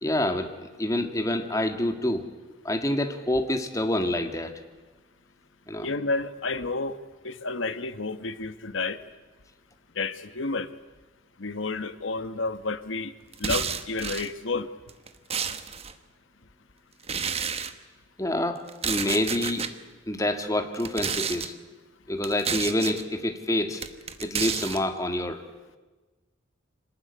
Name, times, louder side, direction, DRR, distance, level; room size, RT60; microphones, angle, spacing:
voice 1, 0.0-2.2 2.6-4.5 5.7-5.9 18.2-19.7 20.1-21.5 22.1-23.8 24.2-25.4, left 1 dB, 15° left, 6 dB, 1.9 m, -27 dB
voice 2, 5.8-7.0 7.2-9.0 9.9-10.7 11.4-13.1 13.4-14.7, left 3 dB, 80° left, 11 dB, 1.3 m, -30 dB
sound 1, 13.3-14.3 14.9-15.9 17.0-17.7 18.7-19.7 20.7-21.5 22.2-23.0 23.8-24.8, right 7 dB, 30° right, 1.1 m, -30 dB
26.0 x 19.0 x 9.8 m, 1.3 s
head